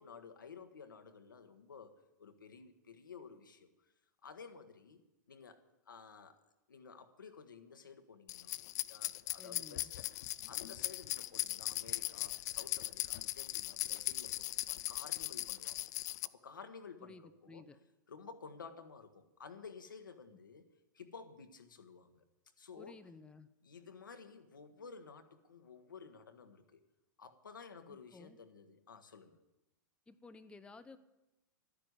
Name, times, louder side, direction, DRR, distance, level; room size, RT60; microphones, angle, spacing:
voice 1, 0.0-3.7 4.2-5.0 5.3-6.4 6.7-10.1 10.5-15.9 16.2-17.6 18.1-20.6 20.9-22.2 22.6-23.0 23.6-26.8 27.2-29.4, left 5 dB, 85° left, 7 dB, 1.3 m, -53 dB
sound 1, 8.3-16.3, left 16 dB, 60° left, 0.5 m, -39 dB
voice 2, 9.4-9.9 17.0-17.8 22.8-23.5 27.9-28.4 30.1-31.0, left 3 dB, 10° left, 9 dB, 0.7 m, -55 dB
12.0 x 10.0 x 8.0 m, 0.96 s
hypercardioid pair, 100°, 11 cm